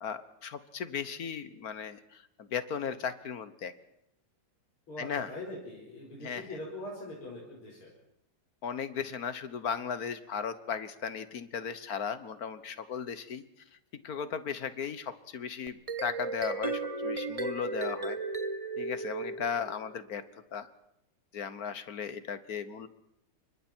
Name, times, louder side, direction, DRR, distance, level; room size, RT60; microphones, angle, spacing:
voice 1, 0.0-3.7 5.0-5.3 6.2-6.5 8.6-13.4 14.0-18.2 18.8-20.7 21.3-22.9, left 7 dB, 50° left, 13 dB, 1.3 m, -36 dB
voice 2, 4.9-7.9, left 1 dB, 75° left, -4 dB, 5.9 m, -42 dB
sound 1, 15.7-20.0, right 3 dB, 30° right, 0.6 m, -35 dB
29.0 x 24.5 x 4.5 m, 0.82 s
omnidirectional pair, 2.4 m